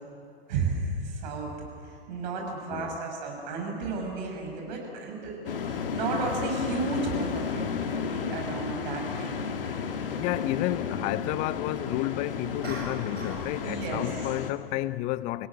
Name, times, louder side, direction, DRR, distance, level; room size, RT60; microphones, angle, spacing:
voice 1, 0.5-1.5 1.8-9.9 13.6-14.2, right 3 dB, 45° right, 6.5 m, -33 dB
voice 2, 2.3-3.0 9.9-15.5, left 16 dB, 25° left, 0.5 m, -31 dB
sound 1, 5.4-14.5, left 6 dB, 60° left, 1.7 m, -33 dB
sound 2, 12.6-13.5 13.8-14.1, right 1 dB, 85° right, 8.0 m, -39 dB
26.5 x 16.5 x 9.5 m
figure-of-eight pair, 105°, 31 cm